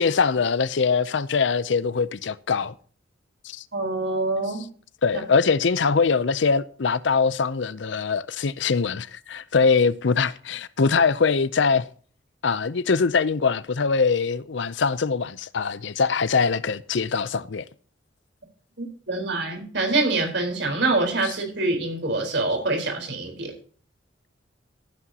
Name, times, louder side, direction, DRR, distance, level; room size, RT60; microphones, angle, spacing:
voice 1, 0.0-2.7 3.4-3.6 5.0-11.9 12.4-17.6, left 5 dB, 65° left, 0.6 m, -22 dB
voice 2, 3.7-4.7 18.8-23.5, right 2 dB, 60° right, 4.3 m, -25 dB
16.0 x 9.9 x 2.9 m
head